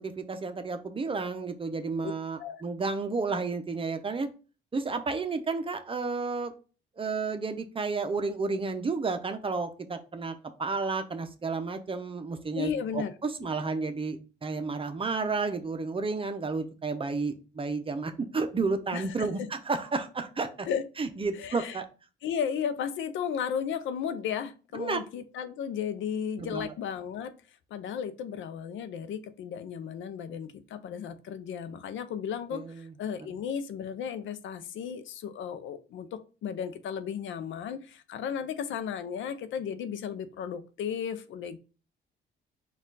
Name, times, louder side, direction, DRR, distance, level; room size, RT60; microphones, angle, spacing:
voice 1, 0.0-4.3 4.7-6.5 7.0-20.7 21.0-21.8 24.7-25.0 26.4-26.7 32.5-32.9, right 4 dB, 25° right, 8 dB, 0.6 m, -32 dB
voice 2, 12.6-13.1 13.4-13.6 18.9-19.5 20.7-20.8 21.3-21.8 22.2-27.4 27.7-41.6, left 8 dB, 75° left, 11 dB, 0.5 m, -34 dB
4.3 x 2.4 x 3.9 m, 0.34 s
cardioid pair, 90°, 20 cm